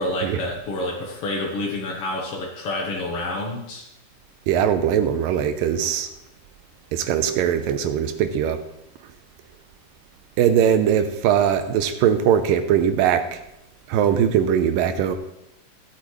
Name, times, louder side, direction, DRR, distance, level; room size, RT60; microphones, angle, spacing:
voice 1, 0.0-3.8, left 1 dB, 60° left, -1 dB, 1.6 m, -28 dB
voice 2, 4.5-6.1 6.9-8.6 10.4-13.4 13.9-15.2, right 9 dB, 80° right, 8 dB, 2.4 m, -20 dB
17.5 x 8.4 x 3.1 m, 0.84 s
omnidirectional pair, 4.0 m